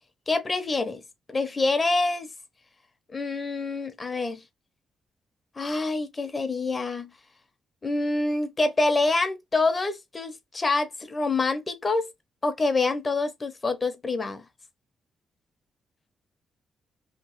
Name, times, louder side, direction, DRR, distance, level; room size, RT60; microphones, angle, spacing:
voice 1, 0.3-1.0 1.3-2.3 3.1-4.4 5.6-7.1 7.8-12.1 12.4-14.4, left 3 dB, 25° left, 0.6 m, -26 dB
2.9 x 2.3 x 3.8 m
cardioid pair, 115°, 0 cm